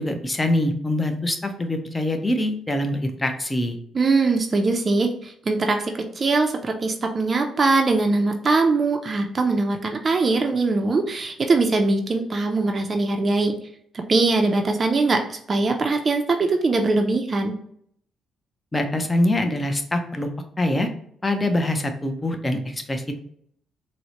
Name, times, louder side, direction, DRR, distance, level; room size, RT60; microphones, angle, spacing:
voice 1, 0.0-3.8 18.7-20.3 20.6-20.9 21.2-23.2, left 1 dB, 20° left, 5 dB, 0.5 m, -24 dB
voice 2, 3.9-13.5 14.1-17.5, right 3 dB, 35° right, 4 dB, 0.5 m, -21 dB
4.2 x 2.1 x 2.8 m, 0.65 s
cardioid pair, 90°, 0 cm